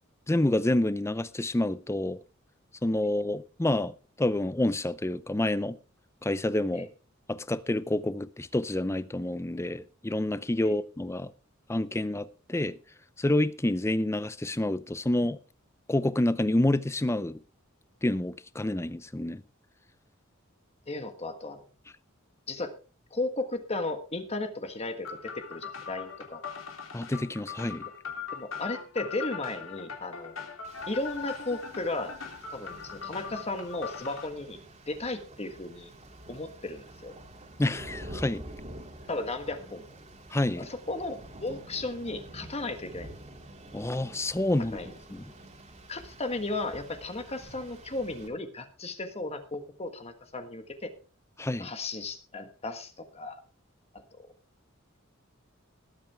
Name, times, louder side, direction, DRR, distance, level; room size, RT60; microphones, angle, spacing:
voice 1, 0.3-2.2 2.8-5.8 6.2-6.9 7.3-11.3 11.7-12.8 13.2-15.4 15.9-17.4 18.0-19.4 26.9-27.9 37.6-38.5 40.3-40.7 43.7-44.8 45.1-45.3 51.4-51.7, left 1 dB, 15° left, 0.6 m, -28 dB
voice 2, 20.9-21.7 22.5-22.7 23.1-26.4 28.3-30.4 30.9-32.1 32.5-34.6 34.9-35.9 36.3-37.1 39.1-40.0 40.6-43.1 44.7-44.9 45.9-50.9 51.6-53.4 54.2-54.3, left 2 dB, 30° left, 1.5 m, -35 dB
sound 1, 25.1-34.3, left 6 dB, 70° left, 3.2 m, -40 dB
Rain, 30.6-48.3, right 1 dB, 35° right, 2.7 m, -48 dB
20.0 x 8.7 x 3.5 m
head